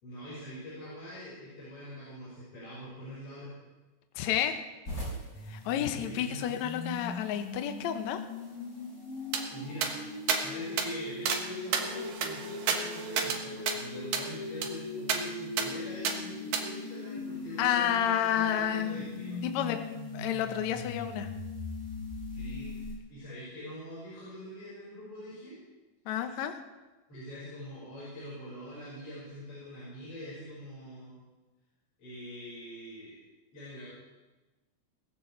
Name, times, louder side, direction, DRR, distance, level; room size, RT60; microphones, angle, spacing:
voice 1, 0.0-3.5 6.0-6.4 9.5-10.0 10.4-19.4 22.3-25.6 27.1-31.2 32.0-33.2 33.5-33.9, equal, 40° left, -9 dB, 6.0 m, -44 dB
voice 2, 4.2-4.6 5.5-8.2 17.6-19.0 19.4-19.8 20.1-21.3 26.1-26.5, left 10 dB, 70° left, 7 dB, 1.9 m, -30 dB
sound 1, 4.8-12.4, right 1 dB, 25° left, 5.2 m, -47 dB
sound 2, 5.3-22.9, left 3 dB, 5° right, 3.0 m, -40 dB
sound 3, 9.3-9.4 9.8-9.9 10.3-10.4 10.8-10.9 11.3-11.4 11.7-13.4 13.7-13.8 14.1-14.3 14.6-14.7 15.1-15.2 15.6-15.7 16.0-16.2 16.5-16.6, right 6 dB, 70° right, 2.9 m, -30 dB
19.5 x 15.0 x 3.3 m, 1.2 s
omnidirectional pair, 4.2 m